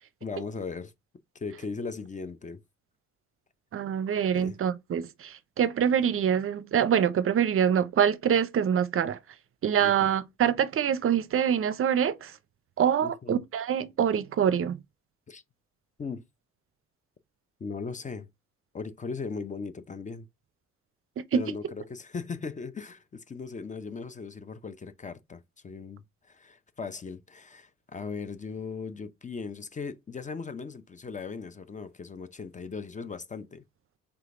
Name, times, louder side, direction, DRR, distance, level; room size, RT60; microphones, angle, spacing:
voice 1, 0.2-0.9 1.3-2.6 4.3-4.6 9.8-10.1 13.0-13.4 15.3-15.4 16.0-16.2 17.6-18.3 18.7-20.3 21.3-33.6, left 5 dB, 25° left, 0.5 m, -38 dB
voice 2, 3.7-9.2 9.6-12.4 12.8-14.8 21.2-21.5, right 8 dB, 45° right, 0.5 m, -25 dB
4.9 x 3.4 x 2.5 m
cardioid pair, 90°, 30 cm